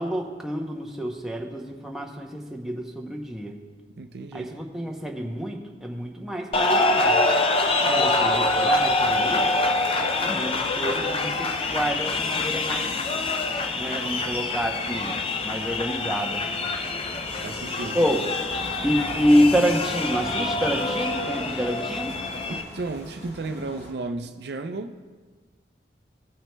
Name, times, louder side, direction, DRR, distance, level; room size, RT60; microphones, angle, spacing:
voice 1, 0.0-3.6 4.3-7.2 7.8-9.6 10.2-12.9 13.7-15.2 15.4-16.4 17.9-18.2 18.8-22.1, equal, 5° right, 0 dB, 0.7 m, -27 dB
voice 2, 3.9-4.5 17.4-18.0 22.5-25.0, right 3 dB, 65° right, 7 dB, 0.5 m, -34 dB
sound 1, 6.5-22.6, left 2 dB, 30° left, 0.5 m, -25 dB
sound 2, 8.0-23.9, equal, 75° left, 1.8 m, -40 dB
17.5 x 6.0 x 2.2 m, 1.4 s
head